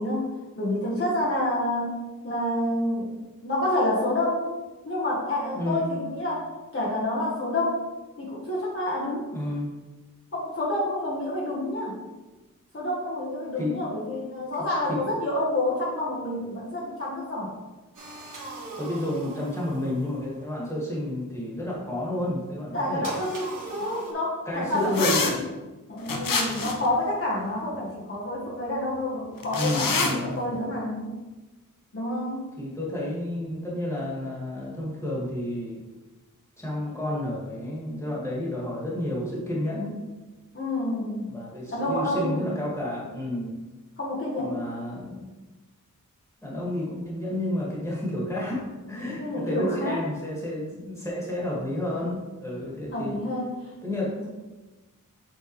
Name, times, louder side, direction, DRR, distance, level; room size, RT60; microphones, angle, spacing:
voice 1, 0.0-1.9 2.2-3.1 3.4-4.5 4.8-7.9 8.2-9.3 10.3-11.9 12.7-17.5 22.7-25.4 25.9-31.1 31.9-32.4 40.5-41.3 41.7-42.4 44.0-44.6 49.2-50.0 52.9-53.6 54.2-54.3, left 1 dB, 40° left, -6 dB, 1.4 m, -28 dB
voice 2, 5.5-5.9 9.3-9.7 13.6-13.8 14.9-15.0 18.8-23.1 23.8-24.0 24.5-25.5 29.5-30.6 32.6-35.8 36.6-40.1 41.3-43.6 44.4-45.3 46.4-53.2 53.8-54.3, left 1 dB, 10° left, -6 dB, 2.1 m, -31 dB
sound 1, 17.9-20.4 23.0-24.1, right 2 dB, 70° right, 1.6 m, -40 dB
sound 2, 24.9-25.3 26.1-26.9 29.4-30.1, left 4 dB, 80° left, 0.9 m, -25 dB
8.1 x 4.4 x 3.3 m, 1.2 s
wide cardioid pair, 140°, 33 cm